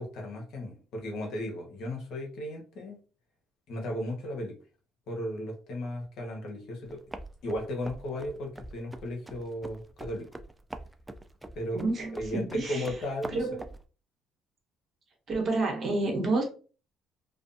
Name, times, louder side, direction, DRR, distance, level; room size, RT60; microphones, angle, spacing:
voice 1, 0.0-3.0 3.7-4.6 5.1-7.0 7.4-10.3 11.5-11.8 12.2-13.4, left 1 dB, 70° left, 0 dB, 0.9 m, -35 dB
sound 1, 6.8-13.8, right 1 dB, 15° right, 0.3 m, -44 dB
voice 2, 11.7-12.9 13.3-13.7 15.3-16.4, right 2 dB, 45° right, 1 dB, 1.0 m, -29 dB
2.4 x 2.2 x 2.6 m, 0.37 s
supercardioid pair, 85°, 0 cm